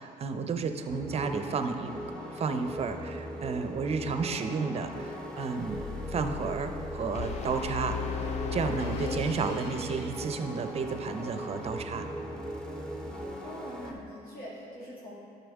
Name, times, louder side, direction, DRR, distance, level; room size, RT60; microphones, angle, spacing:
voice 1, 0.0-2.0 2.3-5.8 6.1-8.0 8.5-12.0, right 5 dB, 40° right, 7 dB, 0.6 m, -32 dB
sound 1, 0.9-13.9, equal, 5° left, 0.9 m, -39 dB
sound 2, 5.6-10.9, left 5 dB, 90° left, 1.3 m, -44 dB
sound 3, 7.1-10.2, left 5 dB, 40° left, 0.5 m, -35 dB
voice 2, 13.4-15.1, equal, 60° left, -8 dB, 1.9 m, -43 dB
10.5 x 5.7 x 3.5 m, 2.6 s
cardioid pair, 110°, 17 cm